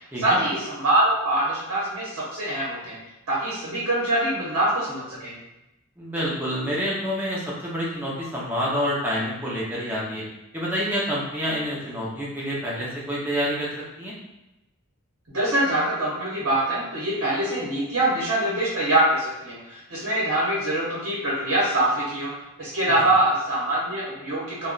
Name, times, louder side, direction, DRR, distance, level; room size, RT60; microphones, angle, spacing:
voice 1, 0.2-3.0 3.3-5.3 15.3-22.3 22.6-24.7, right 1 dB, 60° right, -7 dB, 0.9 m, -24 dB
voice 2, 6.0-10.2 10.5-13.7 14.0-14.1, equal, 10° right, -6 dB, 0.6 m, -27 dB
2.3 x 2.2 x 3.7 m, 0.95 s
head